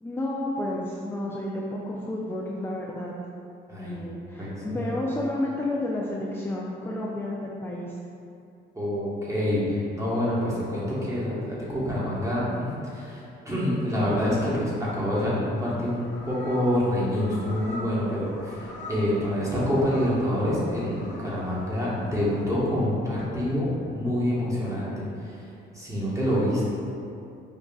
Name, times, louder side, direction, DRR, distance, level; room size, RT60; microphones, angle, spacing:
voice 1, 0.0-3.1 3.8-7.9, left 1 dB, 10° left, -4 dB, 0.3 m, -31 dB
voice 2, 4.4-4.9 8.7-25.4 25.7-26.7, left 1 dB, 15° right, -8 dB, 1.1 m, -27 dB
sound 1, 15.6-22.5, left 1 dB, 65° left, 1.0 m, -43 dB
5.4 x 2.4 x 2.3 m, 2.6 s
cardioid pair, 90°, 20 cm